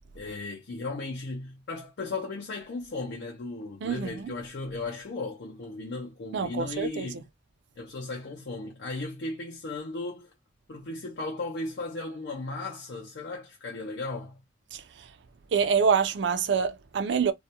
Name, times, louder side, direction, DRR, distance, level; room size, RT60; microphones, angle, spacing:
voice 1, 0.1-7.2 7.8-10.3 10.7-14.4, left 3 dB, 65° left, 0.5 m, -36 dB
voice 2, 3.8-4.3 6.3-7.1 14.7-14.8 15.5-17.3, right 6 dB, 70° right, 0.4 m, -26 dB
2.3 x 2.0 x 2.8 m
head